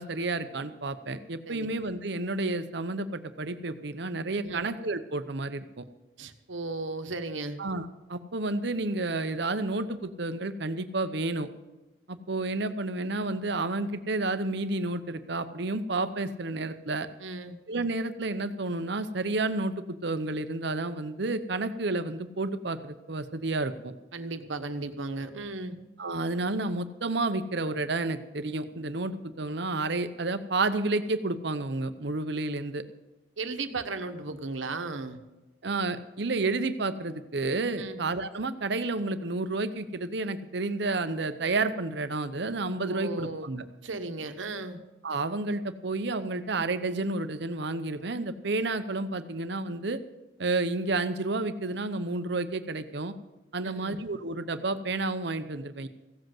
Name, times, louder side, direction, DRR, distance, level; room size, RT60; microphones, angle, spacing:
voice 1, 0.0-5.8 7.6-11.5 12.1-17.1 17.7-23.9 26.0-32.8 35.6-43.6 45.0-50.0 50.4-53.1 53.5-55.9, right 2 dB, 60° right, 10 dB, 0.8 m, -30 dB
voice 2, 4.3-4.6 6.2-7.6 17.2-17.6 24.1-25.8 33.4-35.2 37.8-38.0 42.9-43.5 43.8-44.8 53.6-54.0, right 3 dB, 85° right, 8 dB, 1.2 m, -35 dB
16.0 x 7.9 x 7.7 m, 1.1 s
head